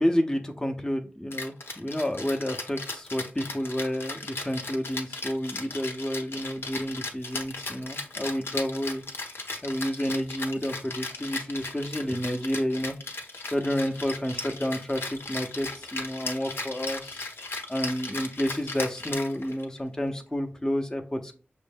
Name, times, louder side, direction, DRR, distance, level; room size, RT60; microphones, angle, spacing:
voice 1, 0.0-9.0 9.6-12.9 13.4-17.2 17.7-21.3, equal, 15° left, 3 dB, 0.6 m, -30 dB
Rattle (instrument), 1.3-19.8, left 3 dB, 85° left, 0.9 m, -36 dB
6.3 x 2.1 x 3.4 m, 0.38 s
wide cardioid pair, 60°, 4 cm